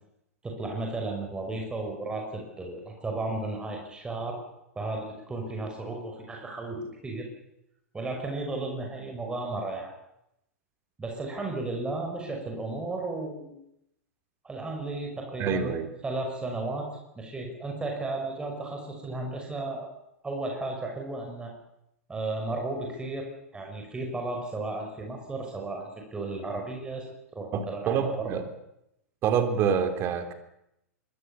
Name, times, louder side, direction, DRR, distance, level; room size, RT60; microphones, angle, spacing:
voice 1, 0.4-4.4 4.8-7.3 7.9-9.9 11.0-13.6 14.4-16.9 17.1-19.9 20.2-21.5 22.1-28.3, right 2 dB, 10° right, 1 dB, 5.8 m, -34 dB
voice 2, 15.4-15.9 27.5-28.4 29.2-30.3, right 7 dB, 30° right, 8 dB, 3.7 m, -26 dB
25.0 x 23.0 x 7.1 m, 0.82 s
figure-of-eight pair, 100°, 8 cm